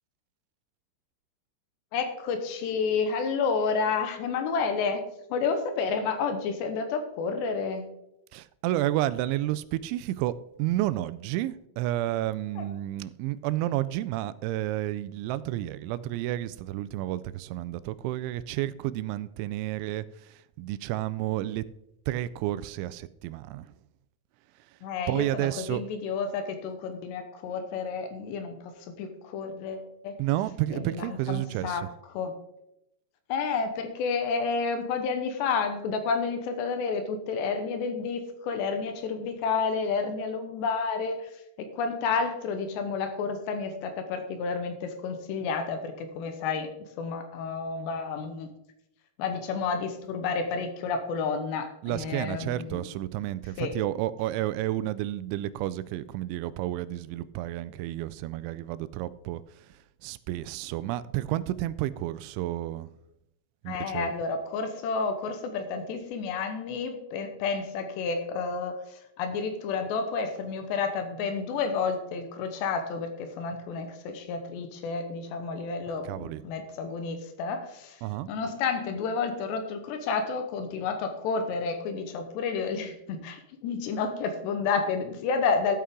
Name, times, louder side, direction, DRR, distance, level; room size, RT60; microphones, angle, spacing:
voice 1, 1.9-5.0 5.3-7.9 12.6-12.7 24.8-30.1 30.7-32.4 33.3-41.3 41.6-48.5 49.2-52.8 53.6-53.7 63.7-78.0 78.3-85.8, left 5 dB, 75° left, 3.0 m, -30 dB
voice 2, 8.3-21.6 22.1-23.7 25.1-25.8 30.2-31.9 51.8-59.4 60.0-62.9 63.6-64.1 76.0-76.4 78.0-78.3, right 14 dB, 90° right, 2.9 m, -31 dB
12.5 x 8.5 x 3.7 m
omnidirectional pair, 5.3 m